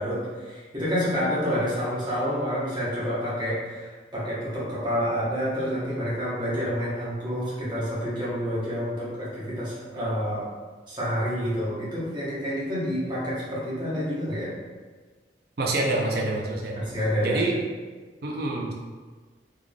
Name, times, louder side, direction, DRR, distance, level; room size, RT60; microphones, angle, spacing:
voice 1, 0.0-10.4 10.9-14.5 16.7-17.4, equal, 25° right, -9 dB, 1.1 m, -28 dB
voice 2, 15.6-16.8 17.2-17.5 18.2-18.7, right 2 dB, 60° right, -1 dB, 0.6 m, -26 dB
3.6 x 3.4 x 2.3 m, 1.4 s
head